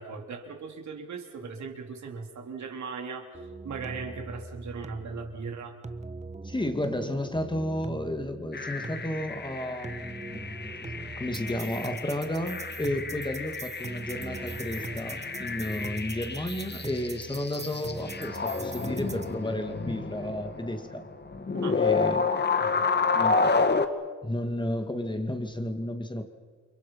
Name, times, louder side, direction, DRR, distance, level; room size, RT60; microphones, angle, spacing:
voice 1, 0.0-5.8 21.5-21.8 22.6-22.8, right 5 dB, 60° right, 3 dB, 3.8 m, -38 dB
sound 1, 3.3-19.3, right 3 dB, 20° right, 1.3 m, -41 dB
voice 2, 6.4-21.0 21.7-22.3 23.1-23.7 24.2-26.2, left 1 dB, 15° left, 6 dB, 2.3 m, -32 dB
sound 2, 8.5-23.9, left 4 dB, 30° left, 2.0 m, -30 dB
30.0 x 23.5 x 5.9 m, 1.5 s
cardioid pair, 75°, 33 cm